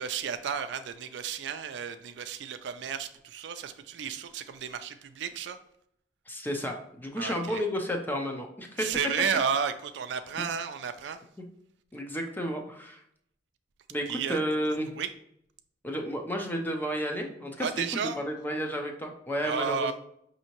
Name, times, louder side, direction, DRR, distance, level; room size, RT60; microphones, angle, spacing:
voice 1, 0.0-5.6 7.2-7.6 8.8-11.2 14.1-14.4 15.0-15.1 17.6-18.2 19.4-19.9, right 7 dB, 85° right, 10 dB, 0.4 m, -32 dB
voice 2, 6.3-8.9 11.4-11.5 11.9-13.0 13.9-15.0 15.8-19.9, equal, 10° left, 3 dB, 0.5 m, -32 dB
5.3 x 2.8 x 2.9 m, 0.71 s
head